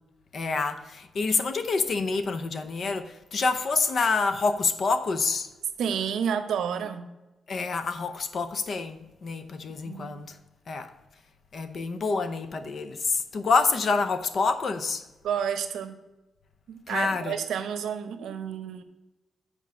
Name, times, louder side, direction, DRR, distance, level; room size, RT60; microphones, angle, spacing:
voice 1, 0.3-5.5 7.5-10.4 10.7-10.9 11.5-15.0 16.9-17.4, left 4 dB, 40° left, 0.6 m, -27 dB
voice 2, 5.8-7.1 9.8-10.2 15.2-16.0 16.7-18.8, right 8 dB, 85° right, 0.8 m, -30 dB
7.5 x 4.6 x 6.9 m
wide cardioid pair, 175°, 0 cm